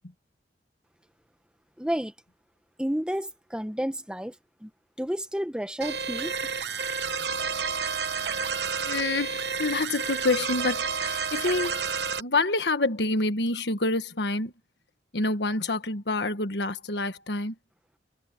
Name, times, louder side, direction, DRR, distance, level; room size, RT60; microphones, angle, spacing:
voice 1, 1.8-2.1 2.8-4.3 4.6-4.7 5.0-6.3, equal, 5° right, 1.3 m, -30 dB
sound 1, 5.8-12.2, right 5 dB, 70° right, 1.0 m, -30 dB
voice 2, 8.8-11.8 12.2-14.5 15.1-17.6, left 2 dB, 70° left, 1.6 m, -27 dB
head